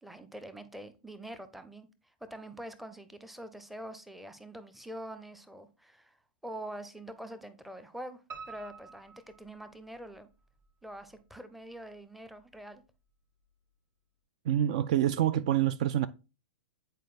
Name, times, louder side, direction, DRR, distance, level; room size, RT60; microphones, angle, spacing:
voice 1, 0.0-1.9 2.3-6.2 6.4-10.3 10.8-12.8, right 1 dB, ahead, 0.6 m, -45 dB
Piano, 8.3-10.2 10.6-11.5 11.8-11.9 12.4-12.5 12.7-12.8, right 5 dB, 25° right, 1.0 m, -49 dB
voice 2, 14.4-16.1, right 11 dB, 45° right, 0.3 m, -26 dB
9.1 x 4.5 x 2.4 m
figure-of-eight pair, 100°, 5 cm